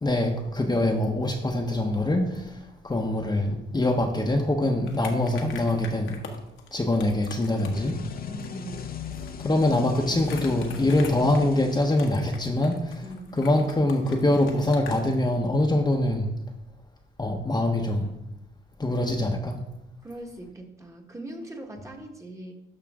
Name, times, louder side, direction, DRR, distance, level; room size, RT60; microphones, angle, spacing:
voice 1, 0.0-6.2 6.7-8.0 9.4-13.0 13.3-16.3 17.2-18.1 18.8-19.6, left 1 dB, 20° left, 1 dB, 1.1 m, -24 dB
sound 1, 4.8-15.2, left 5 dB, 75° left, 1.5 m, -45 dB
sound 2, 7.5-12.4, left 7 dB, 50° left, 0.8 m, -38 dB
voice 2, 8.3-8.8 13.0-13.4 20.0-22.5, right 1 dB, 15° right, 2 dB, 1.6 m, -40 dB
12.0 x 5.9 x 3.7 m, 0.86 s
cardioid pair, 90°, 20 cm